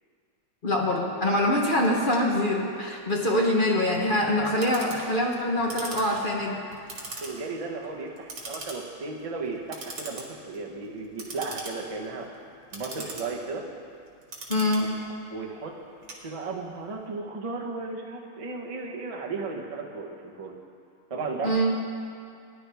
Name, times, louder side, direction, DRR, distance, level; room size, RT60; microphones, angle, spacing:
voice 1, 0.6-6.6 14.5-14.9 21.4-21.7, left 1 dB, 40° left, -1 dB, 0.7 m, -24 dB
Clock, 1.9-16.8, right 2 dB, 80° right, 2.6 m, -42 dB
voice 2, 7.2-12.3 12.7-13.7 14.8-14.9 15.3-15.7 16.2-20.6 21.1-21.5, right 3 dB, 25° right, 0 dB, 0.7 m, -35 dB
18.0 x 10.5 x 3.5 m, 2.4 s
omnidirectional pair, 2.2 m